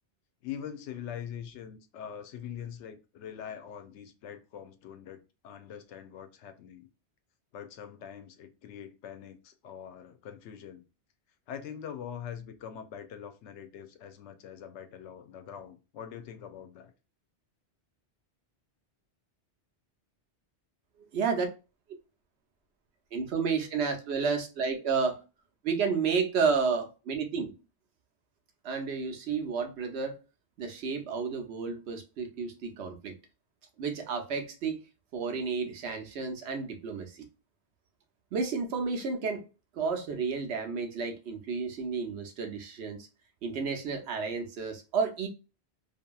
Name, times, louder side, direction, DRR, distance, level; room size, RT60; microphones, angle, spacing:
voice 1, 0.4-6.9 7.5-10.8 11.5-16.9, left 8 dB, 90° left, 0.9 m, -43 dB
voice 2, 21.0-21.5 23.1-25.2 25.6-27.5 28.6-30.2 30.6-33.1 33.8-34.8 35.1-37.3 38.3-39.5 39.7-43.1 43.4-45.3, right 5 dB, 75° right, 1.0 m, -31 dB
2.8 x 2.6 x 2.2 m
omnidirectional pair, 1.1 m